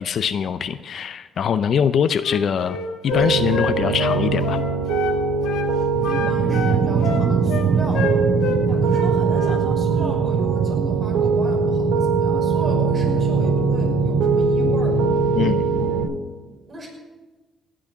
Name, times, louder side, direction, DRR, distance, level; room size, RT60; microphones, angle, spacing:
voice 1, 0.0-2.8 3.0-4.6 15.3-15.6, left 7 dB, 60° left, 12 dB, 0.5 m, -22 dB
Wind instrument woodwind instrument, 2.2-5.2 5.4-5.7 6.0-8.6 8.9-9.6, left 6 dB, 80° left, 1.8 m, -28 dB
Piano, 3.1-16.0, right 4 dB, 90° right, 2.1 m, -22 dB
sound 1, 5.9-16.1, right 6 dB, 55° right, 0.5 m, -24 dB
voice 2, 6.1-8.2 8.7-15.0 16.4-16.9, right 1 dB, 30° right, -3 dB, 5.9 m, -36 dB
18.5 x 6.2 x 7.6 m, 1.3 s
cardioid pair, 90°, 0 cm